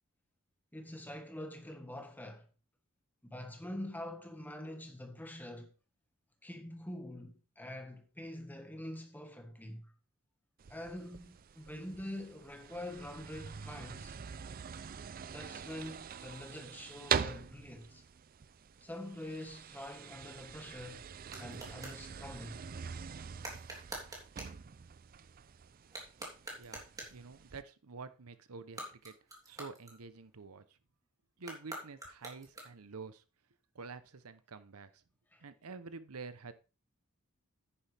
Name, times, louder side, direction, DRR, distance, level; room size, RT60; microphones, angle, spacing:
voice 1, 0.7-2.5 3.2-5.7 6.4-9.9 10.7-14.2 15.2-18.0 18.8-21.1 21.4-22.6 35.3-35.5, left 1 dB, 10° left, 1.5 m, -45 dB
sound 1, 10.6-27.6, right 7 dB, 40° right, 0.4 m, -43 dB
sound 2, 21.3-22.0 23.4-24.6 25.8-27.3 28.6-30.4 31.4-33.0, right 1 dB, 15° right, 3.3 m, -47 dB
voice 2, 27.1-29.1 29.5-30.6 31.4-33.2 33.7-35.0 35.4-36.5, right 4 dB, 90° right, 0.8 m, -48 dB
10.0 x 10.0 x 3.4 m
head